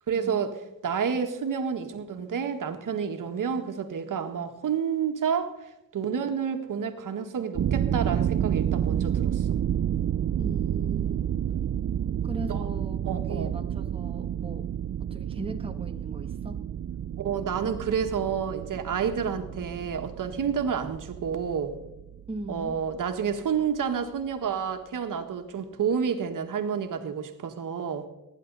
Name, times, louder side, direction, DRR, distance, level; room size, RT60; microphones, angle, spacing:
voice 1, 0.1-0.5 0.8-9.5 12.5-12.7 13.1-13.5 17.2-21.7 22.5-28.1, right 7 dB, 65° right, 5 dB, 1.7 m, -29 dB
sound 1, 7.6-23.3, right 10 dB, 45° right, 0.5 m, -30 dB
voice 2, 10.4-11.4 12.2-14.7 15.1-16.7 22.3-22.8, right 2 dB, 15° right, 4 dB, 1.4 m, -39 dB
24.0 x 11.0 x 4.1 m, 0.92 s
cardioid pair, 105°, 34 cm